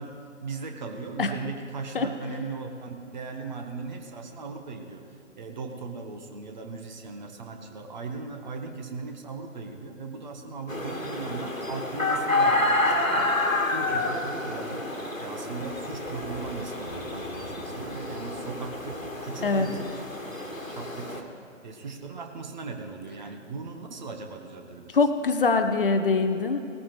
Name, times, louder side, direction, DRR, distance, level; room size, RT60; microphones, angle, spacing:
voice 1, 0.0-5.0 5.4-19.9 20.3-21.3 21.6-25.0, right 4 dB, 35° right, 4 dB, 1.2 m, -38 dB
sound 1, 10.7-21.2, left 2 dB, 85° left, 1.7 m, -29 dB
voice 2, 24.9-26.6, left 4 dB, 45° left, 7 dB, 0.8 m, -23 dB
18.5 x 14.0 x 3.2 m, 2.7 s
figure-of-eight pair, 135°, 40 cm